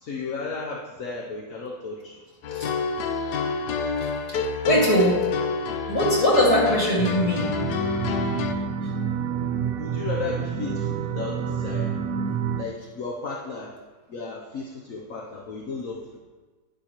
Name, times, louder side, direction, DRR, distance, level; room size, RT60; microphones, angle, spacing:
voice 1, 0.0-2.2 9.7-11.9 12.6-13.7 14.1-16.2, left 4 dB, 60° left, 0 dB, 1.2 m, -34 dB
sound 1, 2.4-8.5, left 4 dB, 80° left, 1.2 m, -27 dB
voice 2, 4.3-5.2 5.9-7.6, equal, 20° left, -4 dB, 2.1 m, -21 dB
sound 2, 7.0-12.6, right 7 dB, 70° right, 1.0 m, -28 dB
10.5 x 9.9 x 3.0 m, 1.3 s
omnidirectional pair, 1.7 m